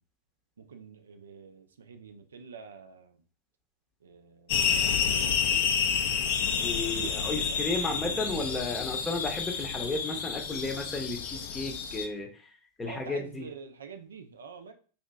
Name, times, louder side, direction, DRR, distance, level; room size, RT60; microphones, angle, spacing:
voice 1, 0.7-3.1 4.0-5.7 7.2-7.6 12.8-14.7, right 6 dB, 70° right, 8 dB, 0.3 m, -46 dB
sound 1, 4.5-12.1, left 7 dB, 50° left, 0.4 m, -29 dB
voice 2, 6.6-12.3 12.8-13.5, left 2 dB, 15° left, 3 dB, 0.7 m, -33 dB
4.1 x 2.6 x 2.2 m, 0.40 s
figure-of-eight pair, 90°, 0 cm